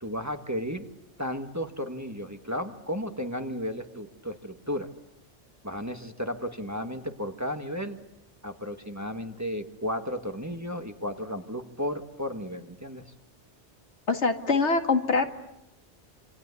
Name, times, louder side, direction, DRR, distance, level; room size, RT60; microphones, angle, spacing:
voice 1, 0.0-0.9 1.2-4.9 5.6-8.0 8.4-13.0, equal, 15° right, 6 dB, 1.6 m, -34 dB
voice 2, 14.1-15.3, left 4 dB, 80° left, 6 dB, 2.2 m, -24 dB
27.5 x 25.5 x 8.4 m, 0.85 s
omnidirectional pair, 1.2 m